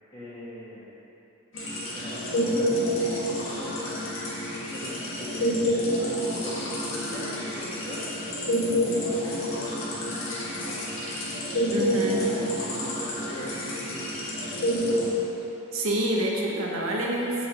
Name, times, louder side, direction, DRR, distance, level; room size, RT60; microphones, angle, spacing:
voice 1, 0.1-0.9 1.9-3.9 4.5-5.5 5.9-6.5 6.9-8.0 8.8-11.3 11.6-15.2, equal, 25° left, -10 dB, 1.9 m, -42 dB
sound 1, 1.5-15.1, equal, 70° left, 1.6 m, -28 dB
voice 2, 11.7-12.3 15.7-17.3, right 1 dB, 85° right, -2 dB, 1.2 m, -27 dB
6.8 x 5.0 x 6.4 m, 3.0 s
head